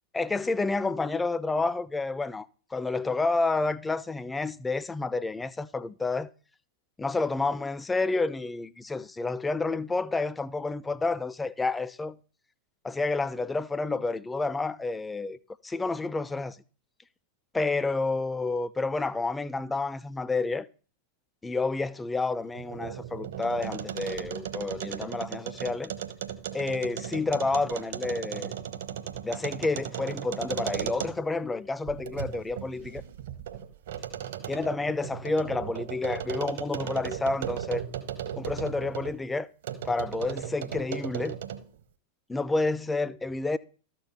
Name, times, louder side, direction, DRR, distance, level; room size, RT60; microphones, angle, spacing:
voice 1, 0.1-2.5 2.7-6.3 7.0-12.2 12.8-15.4 15.6-16.6 17.5-20.7 21.4-25.9 26.5-28.5 29.2-33.0 34.5-37.8 38.4-39.5 39.8-41.4 42.3-43.6, left 3 dB, 10° left, 0.5 m, -29 dB
sound 1, 22.4-31.4 31.9-39.2 39.6-41.7, right 9 dB, 60° right, 1.0 m, -36 dB
13.0 x 4.6 x 6.6 m
figure-of-eight pair, 90°, 0 cm